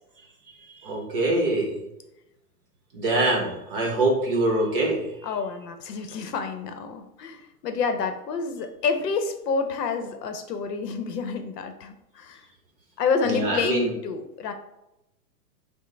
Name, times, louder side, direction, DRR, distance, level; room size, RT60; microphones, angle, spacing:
voice 1, 0.7-1.7 2.9-5.1 13.2-13.9, right 2 dB, 35° right, 0 dB, 0.9 m, -24 dB
voice 2, 5.2-12.4 13.0-14.5, left 5 dB, 70° left, 7 dB, 0.7 m, -28 dB
6.1 x 2.0 x 3.2 m, 0.91 s
hypercardioid pair, 165°, 50 cm